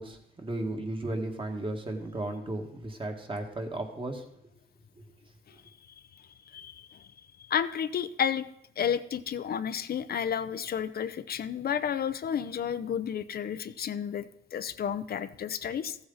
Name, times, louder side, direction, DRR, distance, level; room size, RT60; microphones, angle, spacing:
voice 1, 0.0-4.2, right 2 dB, 25° right, 4 dB, 1.9 m, -35 dB
voice 2, 6.5-7.1 7.4-8.4 8.8-16.0, left 8 dB, 50° left, 11 dB, 0.6 m, -31 dB
14.5 x 7.9 x 4.0 m, 0.75 s
cardioid pair, 90°, 20 cm